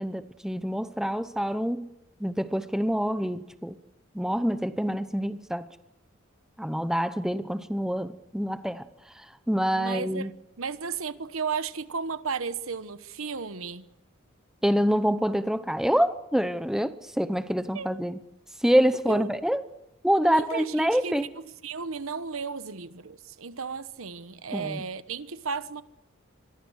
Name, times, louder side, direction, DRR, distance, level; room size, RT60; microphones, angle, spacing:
voice 1, 0.0-1.9 2.2-3.8 4.1-5.7 6.6-8.8 9.2-10.3 14.6-18.2 18.6-19.6 20.0-21.3 24.5-24.8, equal, ahead, 0.9 m, -26 dB
voice 2, 9.7-13.9 17.7-18.0 19.1-19.3 20.2-25.8, right 5 dB, 90° right, 1.1 m, -34 dB
26.5 x 23.0 x 6.5 m
head